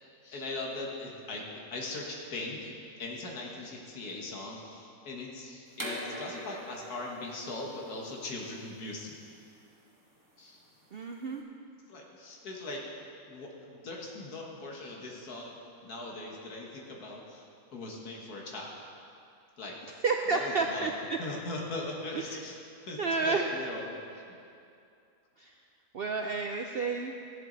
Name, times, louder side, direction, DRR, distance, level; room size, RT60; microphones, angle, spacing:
voice 1, 0.2-1.4 1.7-9.2 10.4-10.6 11.9-12.8 13.3-18.8 19.6-19.8 20.3-20.9 21.2-22.6 22.9-23.9 24.3-24.4, left 2 dB, 85° left, -1 dB, 2.0 m, -40 dB
sound 1, 5.7-11.3, equal, 15° right, 1.5 m, -44 dB
voice 2, 10.9-11.4 20.0-21.2 22.1-22.4 23.0-23.5 25.4-25.5 25.9-27.3, right 4 dB, 65° right, 3 dB, 0.6 m, -31 dB
15.0 x 10.5 x 4.0 m, 2.5 s
omnidirectional pair, 1.6 m